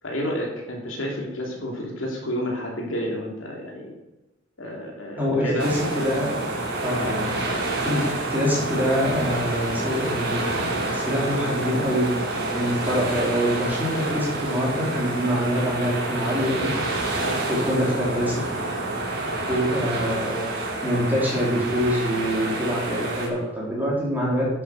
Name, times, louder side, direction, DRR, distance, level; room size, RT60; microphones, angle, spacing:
voice 1, 0.0-3.9 4.6-5.7 6.9-7.4 17.2-17.4, equal, 75° left, -1 dB, 2.8 m, -30 dB
voice 2, 5.2-6.3 6.8-7.4 7.8-8.0 8.3-16.7 17.5-18.4 19.5-24.5, equal, 10° right, -6 dB, 4.1 m, -25 dB
sound 1, 5.6-23.3, right 2 dB, 60° right, 4.6 m, -28 dB
10.5 x 8.0 x 6.3 m, 0.99 s
head